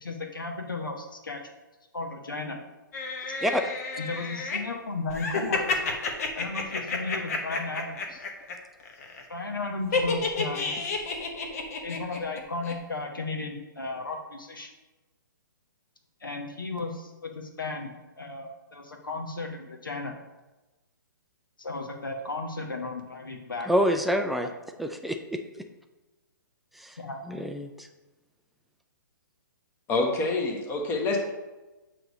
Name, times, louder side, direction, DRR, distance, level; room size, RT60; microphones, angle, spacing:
voice 1, 0.0-1.4 1.9-2.6 4.0-5.9 6.4-8.2 9.3-10.8 11.8-14.7 16.2-17.9 18.2-20.1 21.6-24.0 27.0-27.2, left 3 dB, 75° left, 2 dB, 1.2 m, -35 dB
sound 1, 2.9-4.6 5.1-8.5 8.8-9.2 9.9-12.4 12.6-12.7, left 4 dB, 45° left, 1.1 m, -30 dB
voice 2, 23.7-24.5 24.8-25.4 26.8-26.9 27.3-27.9, equal, ahead, 4 dB, 0.3 m, -27 dB
voice 3, 29.9-31.3, left 2 dB, 20° left, 1 dB, 1.2 m, -26 dB
7.6 x 3.3 x 5.2 m, 1.1 s
figure-of-eight pair, 125°, 11 cm